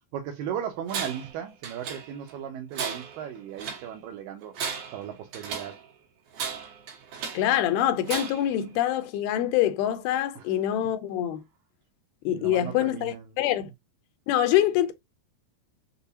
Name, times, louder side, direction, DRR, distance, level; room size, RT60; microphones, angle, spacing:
voice 1, 0.1-4.6 4.9-5.8 10.4-10.5 10.8-10.9 12.3-13.2, right 9 dB, 80° right, 2.0 m, -36 dB
Tools, 0.9-1.3 1.6-2.3 2.7-3.9 4.4-5.8 6.3-7.5 8.0-8.6, right 6 dB, 65° right, 2.6 m, -35 dB
voice 2, 7.3-11.4 12.3-13.7 14.3-14.9, left 12 dB, 85° left, 2.5 m, -25 dB
6.8 x 2.3 x 2.7 m
omnidirectional pair, 4.5 m